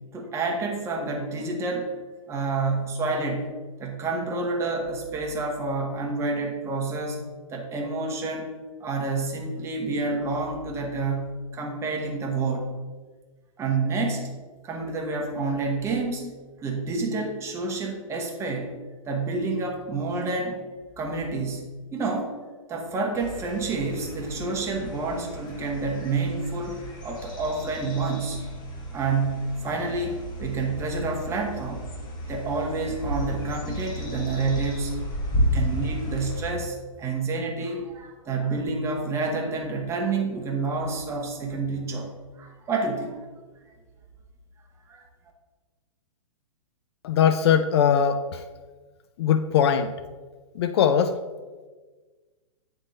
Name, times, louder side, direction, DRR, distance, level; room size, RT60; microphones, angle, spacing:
voice 1, 0.1-1.9 2.3-3.5 3.8-7.2 7.5-12.7 13.6-14.3 14.6-18.7 19.0-20.6 21.0-21.6 21.9-22.3 22.7-28.4 28.9-31.8 32.3-34.9 35.4-42.1 42.4-43.2 44.9-45.0, right 3 dB, 15° right, 1 dB, 1.0 m, -28 dB
sound 1, 23.1-36.5, equal, 25° left, 1.2 m, -33 dB
voice 2, 47.0-48.4 49.2-49.9 50.6-51.2, left 8 dB, 50° left, 10 dB, 0.4 m, -21 dB
9.1 x 3.7 x 4.0 m, 1.4 s
hypercardioid pair, 140°, 18 cm